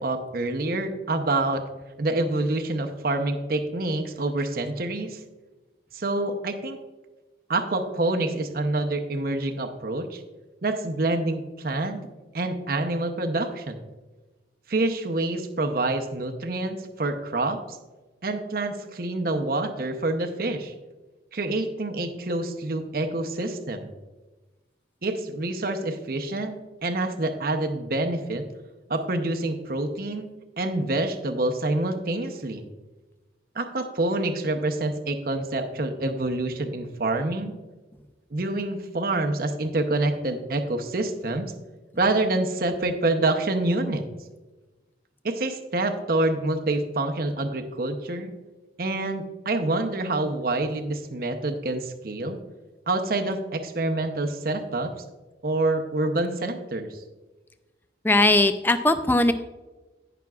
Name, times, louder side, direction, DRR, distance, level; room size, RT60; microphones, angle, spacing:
voice 1, 0.0-1.6 2.0-5.2 5.9-6.8 7.5-10.2 10.6-12.1 12.3-13.8 14.7-17.8 18.2-20.7 21.3-23.9 25.0-26.5 26.8-28.5 28.9-30.3 30.6-32.6 33.5-37.6 38.3-41.5 41.9-44.0 45.2-48.3 48.8-52.4 52.9-54.9 55.4-57.0, right 2 dB, 50° right, 5 dB, 0.7 m, -27 dB
voice 2, 58.0-59.3, left 2 dB, 10° left, 10 dB, 0.4 m, -19 dB
16.5 x 5.9 x 2.4 m, 1.2 s
head